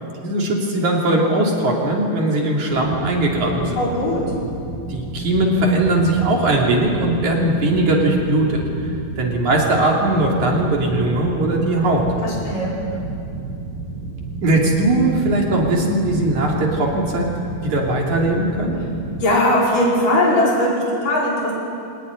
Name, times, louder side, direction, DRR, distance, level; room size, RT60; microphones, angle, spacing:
voice 1, 0.2-3.8 4.9-12.0 14.4-17.3 17.6-18.8, right 1 dB, 50° right, -1 dB, 4.2 m, -19 dB
sound 1, 2.7-19.2, right 3 dB, 75° right, 6.4 m, -31 dB
voice 2, 3.8-4.2 12.2-12.8 19.2-21.5, left 1 dB, 60° left, -4 dB, 6.8 m, -19 dB
25.0 x 19.0 x 9.8 m, 2.6 s
omnidirectional pair, 4.3 m